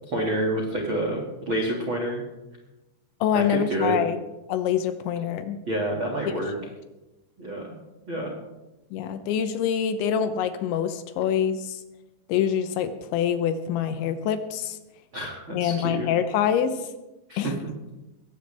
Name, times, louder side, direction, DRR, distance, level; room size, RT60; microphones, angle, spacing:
voice 1, 0.0-2.2 3.3-4.0 5.7-6.5 7.4-7.7 8.1-8.3 15.1-16.1 17.3-17.5, right 1 dB, 60° right, 0 dB, 1.3 m, -28 dB
voice 2, 3.2-4.2 4.5-5.6 8.9-11.8 12.3-14.8 15.5-16.7 17.4-17.6, left 8 dB, 75° left, 9 dB, 2.8 m, -25 dB
20.5 x 16.0 x 3.4 m, 1.0 s
omnidirectional pair, 6.0 m